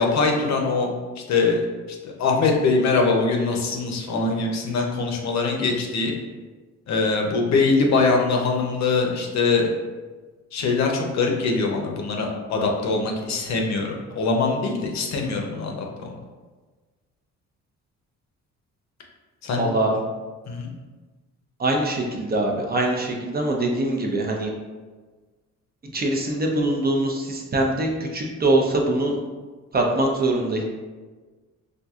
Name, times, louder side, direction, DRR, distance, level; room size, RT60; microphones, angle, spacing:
voice 1, 0.0-1.6 1.9-6.1 6.9-9.7 10.5-16.1 19.4-19.7 20.5-20.7, left 4 dB, 65° left, 1 dB, 0.7 m, -23 dB
voice 2, 19.6-19.9 21.6-24.5 25.9-29.2 29.7-30.6, right 2 dB, 30° right, 0 dB, 0.6 m, -23 dB
4.4 x 2.6 x 2.4 m, 1.3 s
cardioid pair, 90°, 30 cm